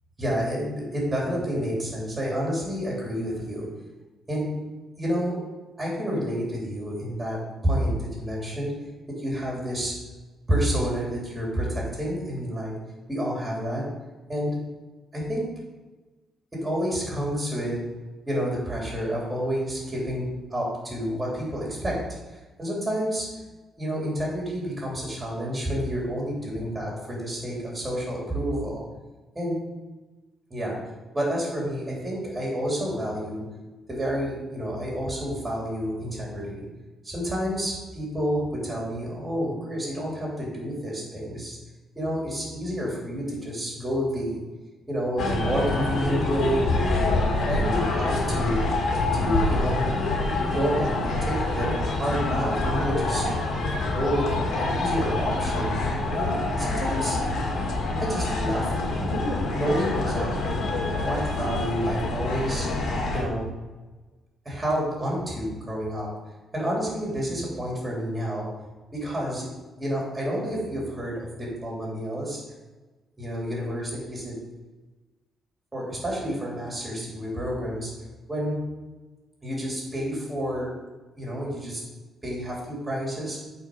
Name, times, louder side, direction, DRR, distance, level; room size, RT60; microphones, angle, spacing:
voice 1, 0.2-3.7 4.3-4.6 5.0-5.4 5.8-8.7 9.2-9.9 10.5-12.7 13.1-13.8 14.3-14.6 15.1-15.4 16.6-17.8 18.3-23.3 23.8-28.8 29.3-29.6 30.5-30.8 31.1-33.4 33.9-36.6 37.0-41.6 41.9-44.4 44.9-46.7 47.1-48.6 49.1-49.8 50.5-53.2 53.9-54.3 54.6-55.8 56.2-57.2 58.0-59.2 59.5-60.6 61.0-62.7 63.1-63.5 64.4-66.1 66.5-68.5 68.9-69.5 69.8-72.4 73.2-74.3 75.7-77.9 78.3-78.6 79.4-80.7 81.2-81.8 82.2-83.4, equal, 15° right, -3 dB, 3.1 m, -29 dB
sound 1, 45.2-63.2, left 2 dB, 65° left, 2.2 m, -26 dB
8.9 x 4.6 x 6.6 m, 1.2 s
cardioid pair, 125°, 0 cm